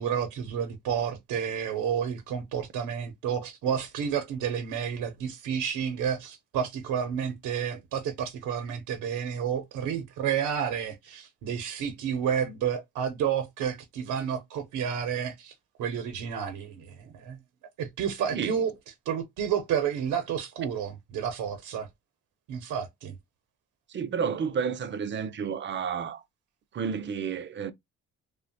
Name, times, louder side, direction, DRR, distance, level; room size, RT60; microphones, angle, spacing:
voice 1, 0.0-15.5 15.8-17.4 17.8-18.7 19.1-21.9 22.5-23.1, right 8 dB, 80° right, 0.6 m, -30 dB
voice 2, 23.9-26.2 26.7-27.7, right 6 dB, 40° right, 0.4 m, -31 dB
2.8 x 2.1 x 2.6 m
cardioid pair, 90°, 30 cm